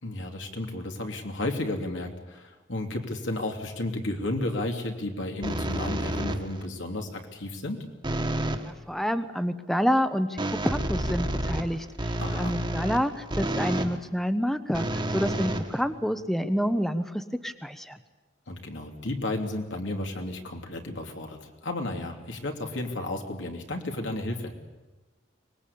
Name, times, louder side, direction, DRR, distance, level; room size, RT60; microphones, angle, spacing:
voice 1, 0.0-7.8 12.2-12.6 18.5-24.5, left 2 dB, 85° left, 3 dB, 3.0 m, -33 dB
sound 1, 5.4-6.7 8.0-8.7 10.4-14.0 14.7-16.2, right 1 dB, 25° right, 1.4 m, -30 dB
voice 2, 8.6-18.0, equal, ahead, 10 dB, 0.8 m, -28 dB
24.0 x 20.0 x 8.6 m, 1.2 s
head